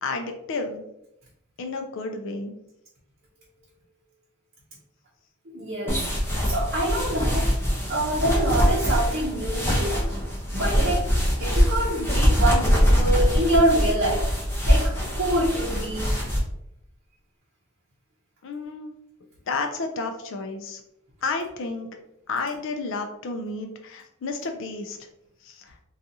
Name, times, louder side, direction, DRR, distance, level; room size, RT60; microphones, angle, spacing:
voice 1, 0.0-0.8 1.6-2.5 18.4-18.9 19.5-20.8 21.2-21.9 22.3-25.0 25.4-25.7, left 3 dB, 60° left, 5 dB, 0.4 m, -31 dB
voice 2, 5.5-6.0 6.5-7.5 7.9-10.2 10.5-11.1 11.4-14.2 14.6-16.1, right 1 dB, 50° right, -5 dB, 0.7 m, -25 dB
sound 1, 5.9-16.4, equal, 10° left, 0.8 m, -23 dB
3.9 x 2.4 x 2.7 m, 0.81 s
head